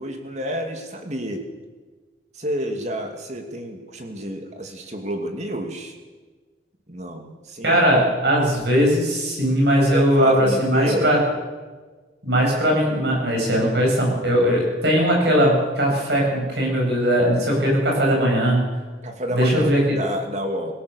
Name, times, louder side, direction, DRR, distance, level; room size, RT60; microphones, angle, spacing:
voice 1, 0.0-1.5 2.3-5.9 6.9-7.8 9.9-11.2 19.0-20.7, equal, 35° right, 4 dB, 2.5 m, -29 dB
voice 2, 7.6-11.2 12.2-18.6 19.3-19.8, equal, 60° right, -1 dB, 7.9 m, -19 dB
24.5 x 16.5 x 7.1 m, 1.4 s
head